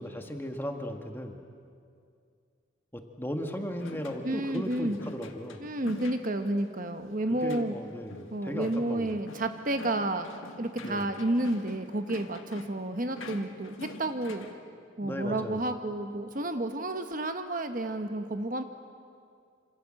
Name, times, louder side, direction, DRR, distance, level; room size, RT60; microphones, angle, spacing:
voice 1, 0.0-1.4 2.9-5.7 7.4-9.2 10.8-11.1 15.0-15.6, equal, 10° left, 4 dB, 1.8 m, -36 dB
sound 1, 3.8-14.6, left 2 dB, 80° left, 2.0 m, -47 dB
voice 2, 4.2-5.0 5.6-7.7 8.3-10.3 10.6-14.5 15.0-18.6, right 1 dB, 40° right, 7 dB, 1.2 m, -31 dB
27.0 x 27.0 x 7.7 m, 2.3 s
head